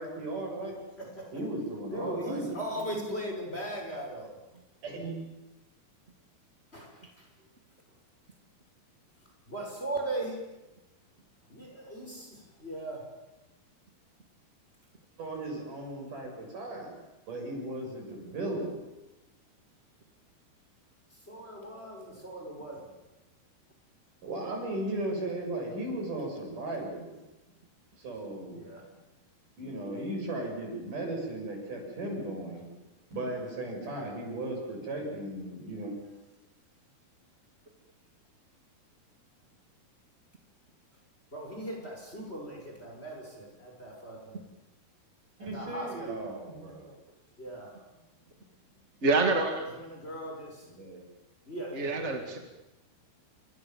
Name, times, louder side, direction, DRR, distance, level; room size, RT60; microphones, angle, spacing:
voice 1, 0.0-0.8 1.3-2.9 4.8-5.2 15.2-16.9 17.3-18.8 24.2-27.2 28.0-28.9 29.6-32.6 33.1-36.0 45.4-47.0 50.7-51.1, right 1 dB, 55° right, 1 dB, 8.8 m, -36 dB
voice 2, 1.0-1.3 1.9-4.3 6.7-7.3 9.5-10.4 11.5-13.1 21.3-22.9 28.5-28.8 41.3-44.4 45.4-46.3 47.4-47.7 49.7-50.7 51.5-52.4, right 1 dB, 15° left, 0 dB, 6.2 m, -39 dB
voice 3, 49.0-49.6 51.7-52.4, right 3 dB, 25° right, 3 dB, 1.5 m, -26 dB
29.5 x 25.5 x 7.5 m, 1.0 s
omnidirectional pair, 4.5 m